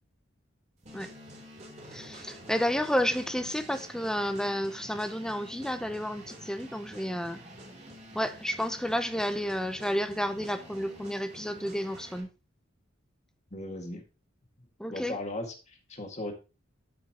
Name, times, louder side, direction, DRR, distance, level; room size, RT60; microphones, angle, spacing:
sound 1, 0.8-12.2, right 1 dB, 35° right, 3.2 m, -48 dB
voice 1, 1.9-7.4 8.1-12.3 14.8-15.2, equal, 5° left, 0.7 m, -31 dB
voice 2, 13.5-14.0 14.9-16.3, left 1 dB, 35° left, 2.0 m, -37 dB
13.5 x 5.7 x 2.9 m
head